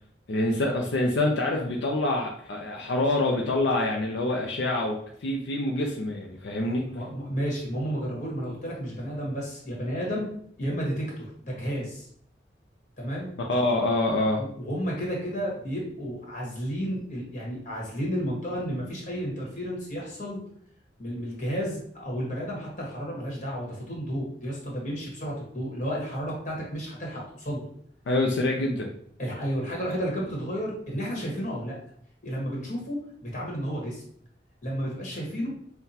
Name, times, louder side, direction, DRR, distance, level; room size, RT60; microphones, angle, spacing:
voice 1, 0.3-6.9 13.5-14.4 28.1-28.9, left 2 dB, 80° left, 1 dB, 0.5 m, -26 dB
voice 2, 6.7-10.3 10.6-12.1 13.0-13.3 14.1-20.4 21.0-27.7 29.2-31.8 32.2-34.0 34.6-35.5, equal, 45° left, -3 dB, 1.4 m, -32 dB
5.7 x 2.2 x 2.8 m, 0.64 s
head